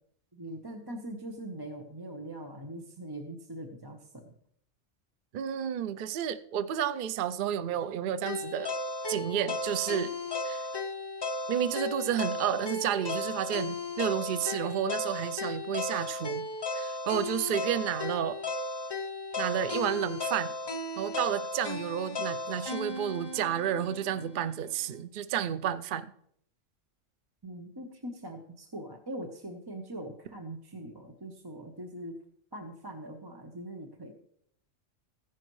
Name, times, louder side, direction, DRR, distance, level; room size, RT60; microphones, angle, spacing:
voice 1, 0.3-4.3 27.4-32.2 32.5-34.1, right 1 dB, 20° right, 3 dB, 0.9 m, -42 dB
voice 2, 5.3-8.7 9.1-10.1 10.4-10.7 11.5-16.5 16.7-18.4 19.4-20.5 21.0-26.1, right 9 dB, 55° right, 12 dB, 0.6 m, -31 dB
sound 1, 8.3-24.4, left 2 dB, 30° left, 0.5 m, -35 dB
15.0 x 10.5 x 3.1 m, 0.67 s
omnidirectional pair, 1.3 m